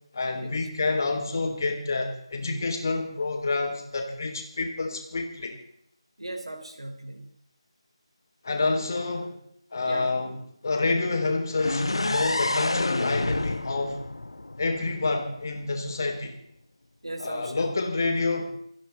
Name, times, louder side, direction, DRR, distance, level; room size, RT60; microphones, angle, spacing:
voice 1, 0.1-5.5 8.4-9.4 9.7-10.4 10.6-14.0 14.6-16.3 17.2-18.5, left 3 dB, 40° left, 3 dB, 3.7 m, -28 dB
voice 2, 6.2-7.3 9.8-10.1 17.0-17.7, right 1 dB, 70° right, 3 dB, 4.6 m, -37 dB
sound 1, 11.6-15.4, left 2 dB, 65° left, 1.4 m, -29 dB
29.0 x 10.0 x 4.1 m, 0.72 s
figure-of-eight pair, 160°, 3 cm